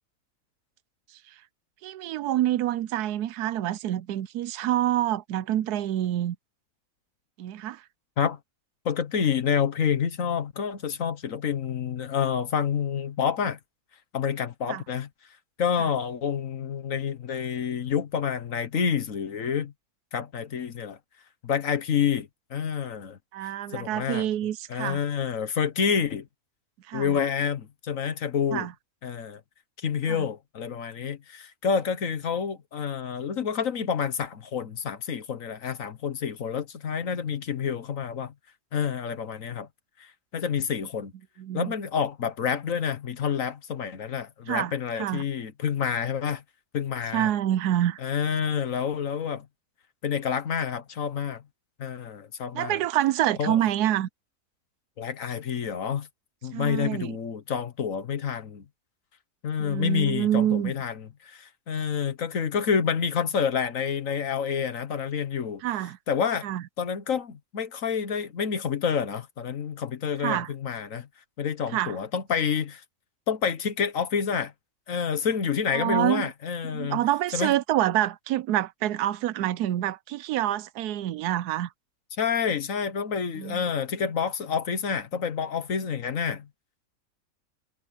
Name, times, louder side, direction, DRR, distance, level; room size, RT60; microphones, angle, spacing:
voice 1, 1.8-6.4 7.4-7.8 14.7-14.8 23.3-25.0 26.9-27.2 28.5-28.7 30.1-30.3 41.4-41.7 44.5-45.2 47.1-48.0 52.5-54.1 56.5-57.1 59.6-60.7 65.6-66.0 66.4-66.6 70.2-70.5 71.7-71.9 75.7-76.3 76.7-81.7 83.4-83.6, right 13 dB, 85° right, 1.1 m, -27 dB
voice 2, 8.8-13.6 14.1-15.1 15.6-19.7 20.1-21.0 21.4-24.3 24.7-26.3 26.9-28.7 29.0-29.4 29.8-38.3 38.7-39.7 40.0-41.1 41.5-46.4 46.7-47.3 48.0-49.5 50.0-51.4 51.8-52.8 53.4-53.6 55.0-56.1 56.4-58.6 59.4-65.6 66.1-66.5 66.8-71.1 71.4-72.8 73.3-74.5 74.9-77.0 77.3-77.5 82.2-86.5, left 7 dB, 60° left, 1.5 m, -28 dB
omnidirectional pair, 1.7 m